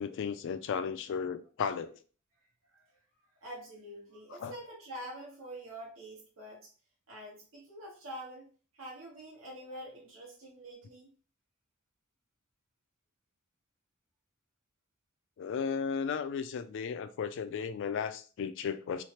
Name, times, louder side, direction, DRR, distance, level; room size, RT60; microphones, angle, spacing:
voice 1, 0.0-2.0 4.4-4.5 15.4-19.0, left 6 dB, 65° left, 0.3 m, -35 dB
voice 2, 3.4-6.7 7.1-8.5 8.7-11.1, right 1 dB, 90° right, 1.0 m, -46 dB
3.1 x 2.1 x 2.8 m
head